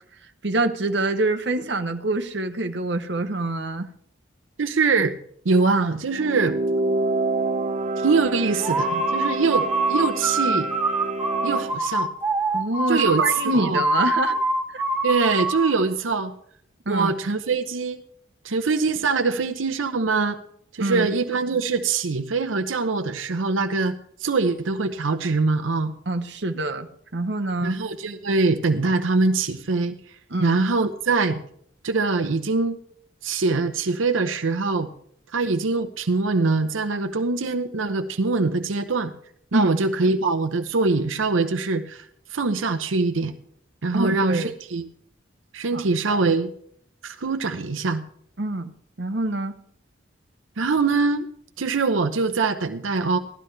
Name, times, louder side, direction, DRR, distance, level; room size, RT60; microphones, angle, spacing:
voice 1, 0.4-3.9 12.5-14.4 14.7-14.8 16.9-17.2 20.8-21.1 26.1-27.8 30.3-30.6 39.5-39.8 43.9-44.5 45.7-46.3 48.4-48.7 49.0-49.5, right 2 dB, 60° right, 7 dB, 0.9 m, -26 dB
voice 2, 4.6-5.1 5.4-6.6 8.0-10.7 11.4-12.1 12.9-13.8 15.0-16.3 16.9-18.0 18.4-20.4 20.7-25.9 27.6-29.9 30.4-31.4 31.8-32.8 33.2-34.9 35.3-39.1 39.5-42.1 42.3-43.3 43.8-44.9 45.5-46.5 47.0-48.0 50.6-51.3 51.6-53.2, right 4 dB, 85° right, 8 dB, 0.7 m, -23 dB
sound 1, 6.0-11.8, right 2 dB, 35° right, 0.5 m, -27 dB
sound 2, 8.6-15.8, right 2 dB, 10° right, 0.9 m, -24 dB
16.5 x 12.5 x 3.3 m, 0.65 s
head